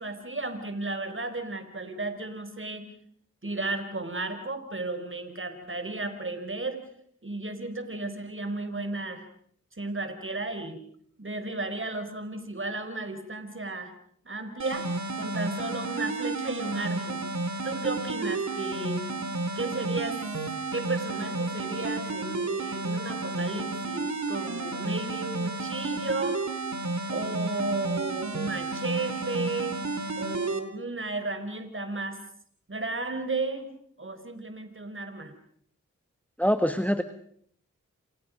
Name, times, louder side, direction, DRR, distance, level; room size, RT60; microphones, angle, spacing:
voice 1, 0.0-2.9 3.4-6.8 7.2-9.3 9.8-10.8 11.2-13.9 14.2-14.9 15.2-17.2 17.6-19.0 19.6-20.3 20.7-26.5 27.1-29.8 30.2-32.2 32.7-33.7 34.0-35.3, right 2 dB, 40° right, 8 dB, 4.4 m, -34 dB
sound 1, 14.6-30.6, right 3 dB, 65° right, 3.0 m, -32 dB
voice 2, 36.4-37.0, equal, 5° left, 9 dB, 1.5 m, -24 dB
29.5 x 27.0 x 5.3 m, 0.64 s
cardioid pair, 40°, 30 cm